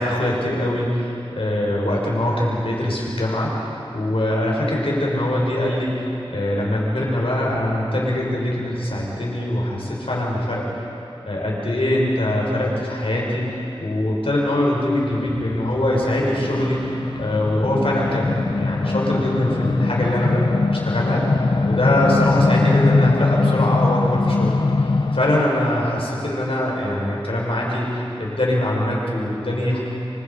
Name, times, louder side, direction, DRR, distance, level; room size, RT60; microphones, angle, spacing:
voice 1, 0.0-10.7 11.2-29.8, left 1 dB, 75° left, -3 dB, 6.5 m, -23 dB
sound 1, 15.1-25.5, left 3 dB, 50° left, 0.6 m, -21 dB
27.5 x 26.0 x 5.6 m, 2.9 s
wide cardioid pair, 60°, 10 cm